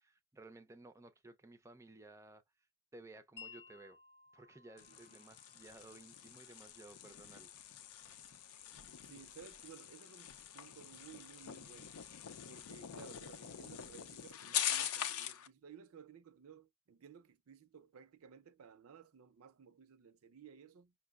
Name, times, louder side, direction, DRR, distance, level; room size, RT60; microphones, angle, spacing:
voice 1, 0.0-2.4 2.9-4.0 4.3-7.5, right 2 dB, 15° right, 0.4 m, -56 dB
Wind chime, 3.4-9.4, left 5 dB, 45° left, 0.6 m, -61 dB
sound 1, 4.8-15.5, left 9 dB, 85° left, 0.5 m, -44 dB
voice 2, 9.0-12.0 12.5-20.9, right 7 dB, 75° right, 0.5 m, -57 dB
5.8 x 2.0 x 2.3 m
head